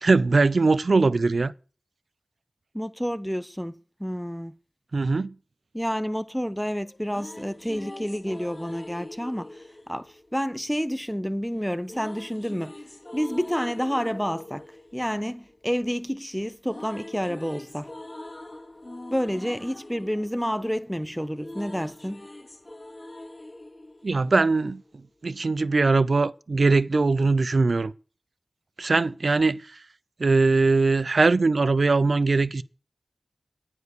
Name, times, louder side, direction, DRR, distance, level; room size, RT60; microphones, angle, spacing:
voice 1, 0.0-1.5 4.9-5.3 24.0-24.8 25.2-27.9 28.8-29.8 30.2-32.6, right 3 dB, 60° right, 0.6 m, -21 dB
voice 2, 2.7-3.7 4.0-4.5 5.7-12.8 13.1-14.6 14.9-17.9 19.1-22.3, equal, ahead, 0.9 m, -29 dB
sound 1, 6.8-11.0 11.8-16.1 16.4-24.9, left 1 dB, 25° left, 4.8 m, -43 dB
11.0 x 9.5 x 6.7 m
cardioid pair, 50°, 0 cm